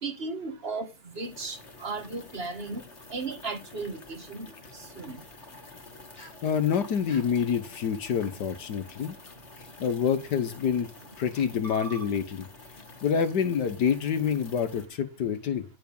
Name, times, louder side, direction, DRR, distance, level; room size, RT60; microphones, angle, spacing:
voice 1, 0.0-0.9 1.2-2.8 3.1-4.5 5.0-5.2, right 3 dB, 35° right, 1.8 m, -35 dB
sound 1, 1.1-14.9, left 3 dB, 40° left, 2.0 m, -49 dB
sound 2, 6.2-6.4 7.1-7.3 9.0-9.2 10.0-10.3 11.0-11.1 11.3-12.5 12.8-12.9 13.2-13.3, right 4 dB, 20° left, 2.2 m, -45 dB
voice 2, 6.4-9.2 9.8-10.9 11.2-12.4 13.0-15.6, left 7 dB, 75° left, 1.7 m, -27 dB
10.5 x 7.2 x 5.3 m
omnidirectional pair, 1.8 m